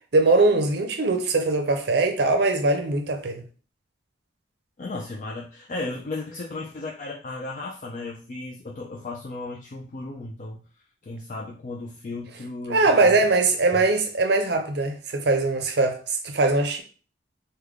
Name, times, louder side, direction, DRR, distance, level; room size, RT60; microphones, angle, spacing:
voice 1, 0.1-3.4 12.7-16.8, right 3 dB, 60° right, 0.6 m, -21 dB
voice 2, 4.8-10.6 11.0-13.2 13.7-13.8, left 2 dB, 40° left, 0.4 m, -35 dB
3.3 x 2.2 x 3.5 m
head